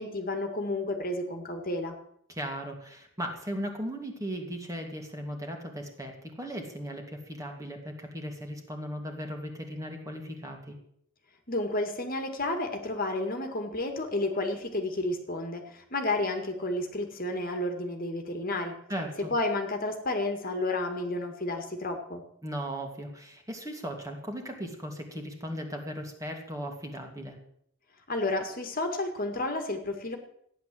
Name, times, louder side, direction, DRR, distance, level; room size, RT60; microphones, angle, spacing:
voice 1, 0.0-2.0 11.5-18.7 19.3-22.2 28.1-30.2, left 2 dB, 40° left, 5 dB, 2.0 m, -31 dB
voice 2, 2.3-10.7 18.9-19.3 22.4-27.4, equal, 15° right, 2 dB, 2.5 m, -37 dB
15.0 x 10.0 x 7.7 m, 0.70 s
head